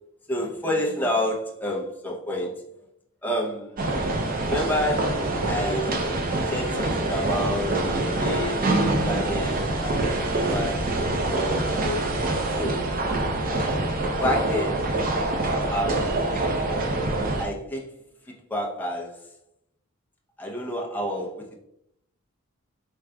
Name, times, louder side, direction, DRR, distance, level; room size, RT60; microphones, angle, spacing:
voice 1, 0.3-2.5 3.2-3.8 4.4-10.0 10.5-12.1 12.6-12.9 14.2-14.9 15.6-16.4 17.4-17.9 18.3-19.2 20.4-21.6, left 1 dB, 10° left, -2 dB, 0.6 m, -29 dB
sound 1, 3.8-17.5, right 2 dB, 40° right, 0.5 m, -25 dB
4.8 x 3.8 x 2.3 m, 0.77 s
head